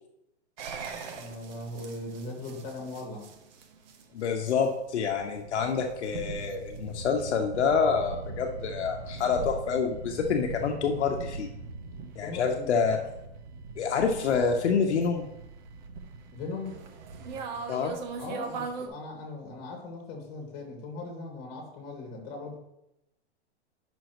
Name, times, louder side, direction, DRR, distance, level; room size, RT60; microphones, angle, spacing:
sound 1, 0.6-18.9, right 4 dB, 40° right, 0.9 m, -41 dB
voice 1, 1.0-3.3 12.2-12.8 16.3-16.9 18.2-22.5, left 2 dB, 30° left, 0 dB, 2.4 m, -39 dB
voice 2, 4.1-11.5 12.2-13.0 13.8-15.3 17.7-17.9, left 5 dB, 75° left, 3 dB, 1.0 m, -27 dB
9.1 x 6.2 x 3.0 m, 0.85 s
hypercardioid pair, 155°, 34 cm